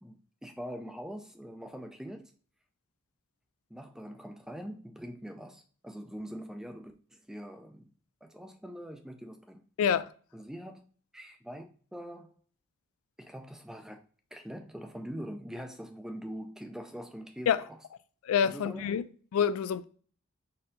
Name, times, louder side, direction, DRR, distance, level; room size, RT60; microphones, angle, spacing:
voice 1, 0.0-2.3 3.7-7.9 8.2-9.6 10.3-10.9 11.1-11.6 11.9-12.4 13.2-14.0 14.3-17.8 18.4-19.0, equal, 5° right, 0.3 m, -43 dB
voice 2, 9.8-10.1 17.5-17.6 18.2-19.0 19.3-19.8, left 7 dB, 85° left, 0.3 m, -27 dB
4.2 x 2.6 x 3.7 m
head